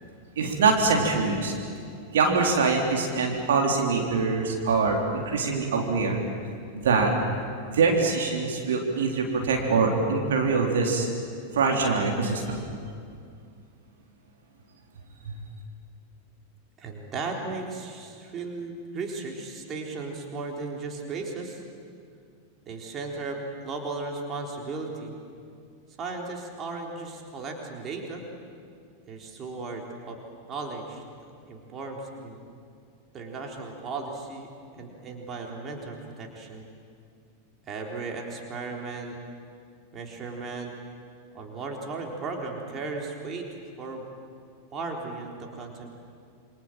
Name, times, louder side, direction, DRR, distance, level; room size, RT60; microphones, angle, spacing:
voice 1, 0.4-1.5 2.1-6.2 6.7-7.1 7.7-11.1 11.5-12.6 15.3-15.4, right 4 dB, 60° right, 0 dB, 3.8 m, -24 dB
voice 2, 16.8-21.6 22.7-25.1 26.0-28.2 29.1-30.2 30.5-31.0 31.5-32.4 33.1-34.5 34.7-36.6 37.7-39.2 39.9-40.7 41.3-43.5 43.8-44.1 44.7-45.9, right 3 dB, 25° right, 1 dB, 4.0 m, -36 dB
28.0 x 25.5 x 7.6 m, 2.3 s
figure-of-eight pair, 90°, 0 cm